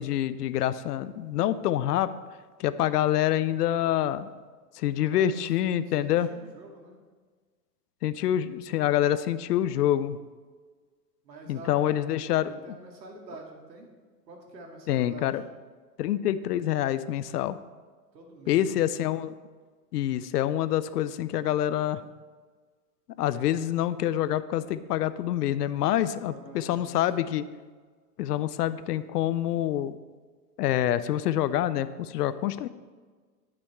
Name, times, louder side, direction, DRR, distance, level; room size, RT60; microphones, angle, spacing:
voice 1, 0.0-2.1 2.6-4.3 4.8-6.3 8.0-10.2 11.5-12.5 14.9-15.4 16.0-17.6 18.5-19.3 19.9-22.0 23.2-27.5 28.2-30.0 30.6-32.7, left 12 dB, 70° left, 15 dB, 0.6 m, -26 dB
voice 2, 5.0-5.3 5.9-7.0 11.2-12.0 12.4-13.9 14.3-15.3 18.1-18.9 26.3-26.9, right 3 dB, 90° right, 1 dB, 2.3 m, -46 dB
11.5 x 6.3 x 4.4 m, 1.5 s
hypercardioid pair, 120°, 49 cm